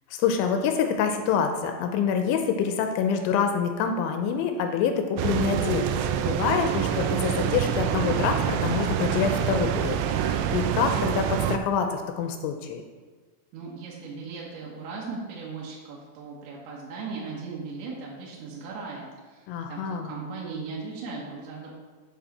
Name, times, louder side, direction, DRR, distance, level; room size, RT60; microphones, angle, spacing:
voice 1, 0.1-12.8 19.5-20.1, left 6 dB, 85° left, 5 dB, 2.9 m, -26 dB
sound 1, 5.2-11.6, right 9 dB, 85° right, 3.0 m, -26 dB
voice 2, 13.5-21.7, right 4 dB, 70° right, -5 dB, 2.7 m, -38 dB
8.1 x 7.0 x 4.2 m, 1.4 s
omnidirectional pair, 5.5 m